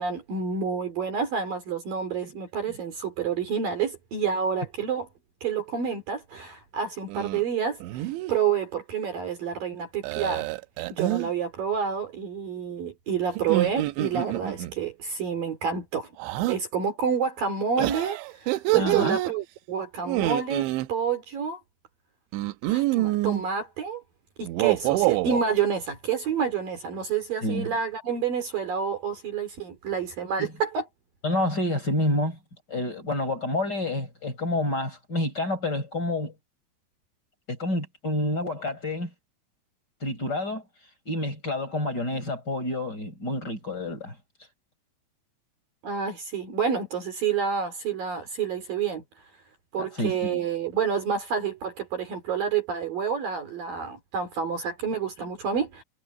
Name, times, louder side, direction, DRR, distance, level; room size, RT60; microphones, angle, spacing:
voice 1, 0.0-5.1 5.4-10.5 10.9-16.1 16.5-21.6 22.7-24.0 24.4-30.8 45.8-49.0 49.7-55.8, right 6 dB, 50° right, 4.3 m, -28 dB
sound 1, 7.1-7.4 7.8-8.3 10.0-11.3 13.4-14.7 16.2-16.6 17.8-19.3 20.0-20.9 22.3-23.4 24.4-25.4, right 18 dB, 80° right, 3.0 m, -27 dB
voice 2, 18.7-19.2 27.4-27.7 30.4-30.5 31.2-32.4 32.7-36.3 37.5-39.1 40.0-40.6 41.1-44.1 49.8-50.4, left 1 dB, 20° left, 5.9 m, -28 dB
omnidirectional pair, 5.5 m